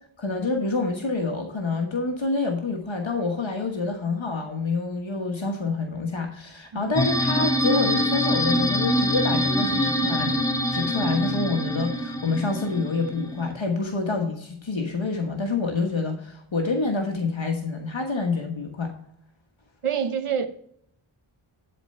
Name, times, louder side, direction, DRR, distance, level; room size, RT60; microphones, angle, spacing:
voice 1, 0.2-10.4 10.7-18.9, left 3 dB, 65° left, 1.4 m, -27 dB
sound 1, 7.0-13.5, equal, 5° left, 1.5 m, -25 dB
voice 2, 19.8-20.5, right 7 dB, 85° right, 1.0 m, -26 dB
11.0 x 4.5 x 5.4 m
wide cardioid pair, 65°, 49 cm